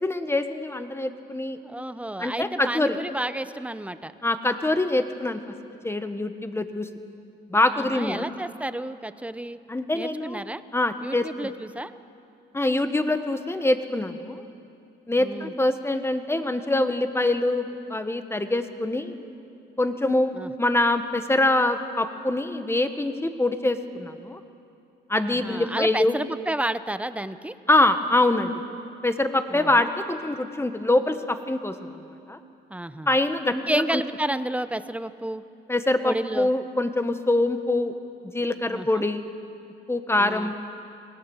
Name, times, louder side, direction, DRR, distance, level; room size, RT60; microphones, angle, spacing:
voice 1, 0.0-1.6 2.2-3.0 4.2-5.4 5.8-6.9 7.5-8.2 9.7-11.5 12.5-14.4 15.1-19.1 19.8-24.4 25.1-26.1 27.7-28.5 29.0-31.7 32.3-32.4 33.1-34.0 35.7-37.9 38.3-39.3 39.9-40.5, left 2 dB, 10° left, 8 dB, 1.5 m, -24 dB
voice 2, 1.6-4.1 7.7-9.6 9.9-10.6 11.0-11.9 15.2-15.5 20.3-20.5 25.2-27.5 29.5-29.9 32.7-33.1 33.5-35.4 36.0-36.5 38.7-39.0 40.2-40.5, right 1 dB, 5° right, 13 dB, 0.8 m, -31 dB
26.0 x 18.0 x 7.3 m, 2.7 s
cardioid pair, 90°, 20 cm